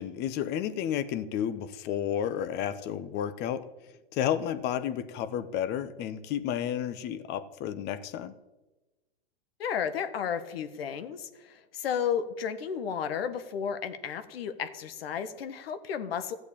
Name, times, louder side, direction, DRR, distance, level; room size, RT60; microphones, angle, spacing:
voice 1, 0.0-3.7 4.1-8.3, left 10 dB, 35° left, 14 dB, 1.0 m, -31 dB
voice 2, 9.6-16.3, left 7 dB, 70° left, 10 dB, 1.6 m, -33 dB
13.5 x 8.1 x 8.7 m, 1.1 s
hypercardioid pair, 130°, 31 cm